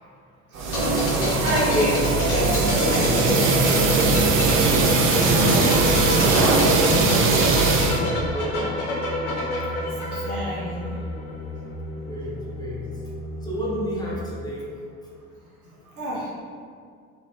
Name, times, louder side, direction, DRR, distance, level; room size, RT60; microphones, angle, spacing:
sound 1, 0.5-8.0, right 3 dB, 30° right, 0.4 m, -20 dB
voice 1, 0.5-3.8 4.9-5.9 7.8-8.3 9.7-10.9 16.0-16.3, equal, 85° right, -5 dB, 0.8 m, -30 dB
sound 2, 0.7-11.3 11.6-11.8, left 1 dB, 45° left, 0.8 m, -29 dB
sound 3, 3.6-14.2, equal, 75° left, 0.8 m, -35 dB
voice 2, 4.9-7.5 7.8-8.7 11.9-12.9 13.4-14.7 15.0-15.1, equal, 10° left, -6 dB, 0.7 m, -33 dB
3.2 x 2.3 x 2.6 m, 2.2 s
figure-of-eight pair, 60°, 43 cm